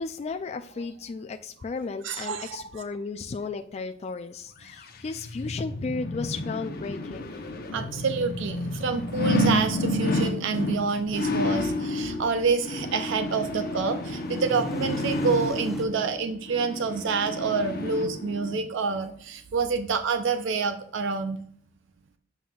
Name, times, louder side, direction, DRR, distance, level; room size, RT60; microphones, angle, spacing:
voice 1, 0.0-7.4, left 4 dB, 35° left, 6 dB, 0.3 m, -34 dB
voice 2, 2.0-2.7 7.7-21.4, right 5 dB, 70° right, 8 dB, 0.5 m, -27 dB
sound 1, 4.7-18.6 19.0-19.1, left 1 dB, 50° left, 0.7 m, -30 dB
sound 2, 7.1-7.2 7.5-7.6 8.9-9.0 11.5-11.6 12.0-12.2 12.6-15.9, right 1 dB, ahead, 0.7 m, -39 dB
7.5 x 5.5 x 2.3 m, 0.63 s
head